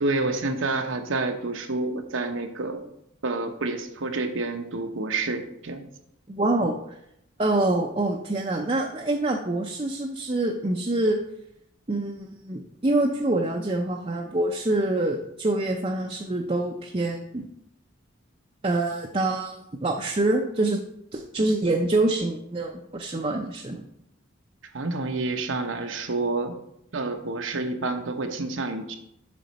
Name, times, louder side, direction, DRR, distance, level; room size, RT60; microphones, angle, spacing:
voice 1, 0.0-2.8 3.2-5.9 24.7-26.5 26.9-29.0, right 3 dB, 75° right, 6 dB, 0.9 m, -28 dB
voice 2, 6.3-7.0 7.4-11.2 11.9-17.4 18.6-20.8 21.1-23.9, right 2 dB, 30° right, 1 dB, 0.5 m, -26 dB
7.7 x 5.8 x 4.1 m, 0.79 s
head